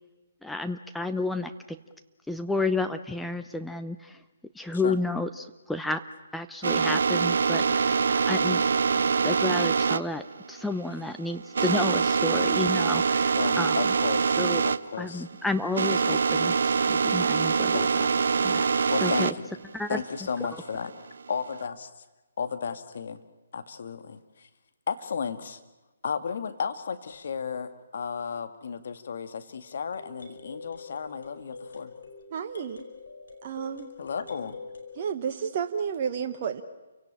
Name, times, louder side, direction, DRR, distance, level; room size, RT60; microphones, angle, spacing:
voice 1, 0.4-1.8 2.3-4.2 4.5-6.0 6.3-8.6 9.2-13.8 14.4-14.6 15.0-17.9 18.4-18.7 19.0-19.3 19.7-20.0, left 2 dB, 5° left, 7 dB, 0.8 m, -31 dB
sound 1, 6.6-14.8 15.1-19.4 19.8-21.6, right 5 dB, 65° right, 0.8 m, -24 dB
voice 2, 13.4-15.3 17.7-17.9 18.4-18.5 18.9-19.6 19.9-20.9 21.3-21.9 22.4-23.2 23.5-24.5 24.9-25.6 26.0-31.9 34.0-34.6, left 6 dB, 60° left, 9 dB, 2.0 m, -34 dB
sound 2, 29.9-35.1, left 4 dB, 75° left, 5.0 m, -45 dB
voice 3, 32.3-32.8 33.4-33.9 35.0-36.6, right 7 dB, 40° right, 6 dB, 1.3 m, -31 dB
29.5 x 17.0 x 8.9 m, 1.1 s
figure-of-eight pair, 140°, 0 cm